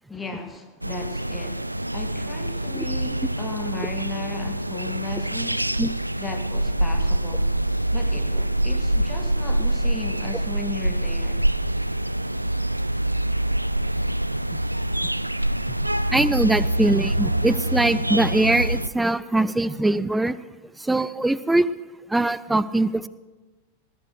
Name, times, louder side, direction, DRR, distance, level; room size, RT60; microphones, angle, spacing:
voice 1, 0.1-5.7 6.2-7.5 7.9-11.4, left 3 dB, 10° left, 5 dB, 1.8 m, -36 dB
sound 1, 0.8-18.9, right 1 dB, 85° right, 0.4 m, -25 dB
voice 2, 16.1-20.4 20.8-21.7 22.1-23.1, right 2 dB, 5° right, 16 dB, 0.5 m, -22 dB
19.0 x 8.0 x 6.5 m, 1.2 s
figure-of-eight pair, 90°, 0 cm